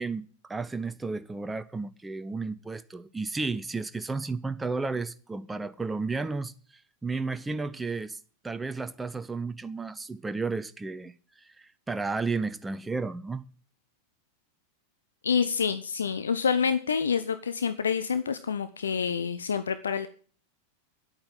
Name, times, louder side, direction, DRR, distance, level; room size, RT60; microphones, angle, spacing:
voice 1, 0.0-6.5 7.0-8.2 8.4-13.5, right 4 dB, 10° right, 0.6 m, -33 dB
voice 2, 15.2-20.1, left 6 dB, 70° left, 0.7 m, -27 dB
10.5 x 8.7 x 7.7 m
figure-of-eight pair, 90°, 0 cm